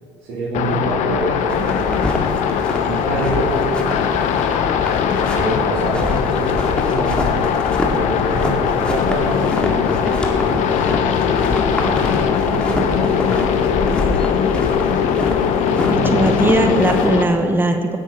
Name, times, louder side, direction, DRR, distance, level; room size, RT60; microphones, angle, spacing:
voice 1, 0.2-1.8 2.8-4.1 5.3-7.5 7.8-10.9 11.3-12.1 12.5-13.4 13.7-13.9 14.4-14.6 15.7-16.4, right 2 dB, 65° right, -9 dB, 3.8 m, -27 dB
sound 1, 0.5-17.2, left 7 dB, 60° left, 1.0 m, -20 dB
sound 2, 1.5-17.1, left 1 dB, 5° left, 2.2 m, -26 dB
voice 2, 15.9-18.0, right 1 dB, 15° right, 6 dB, 1.2 m, -19 dB
17.0 x 7.4 x 5.8 m, 2.3 s
hypercardioid pair, 70°, 14 cm